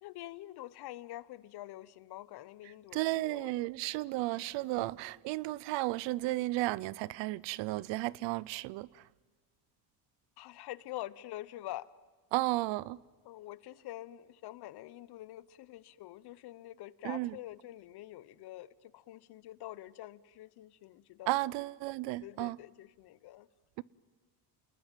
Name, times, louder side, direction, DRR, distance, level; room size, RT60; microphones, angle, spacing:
voice 1, 0.0-3.5 4.3-4.8 10.4-11.9 13.2-21.5 22.2-23.5, left 15 dB, 55° left, 1.0 m, -46 dB
voice 2, 2.9-9.0 12.3-13.0 17.0-17.4 21.3-22.6 23.8-23.9, right 19 dB, 70° right, 0.7 m, -33 dB
sound 1, 4.7-5.2, left 5 dB, 20° left, 3.7 m, -55 dB
28.0 x 20.5 x 9.1 m
cardioid pair, 115°, 46 cm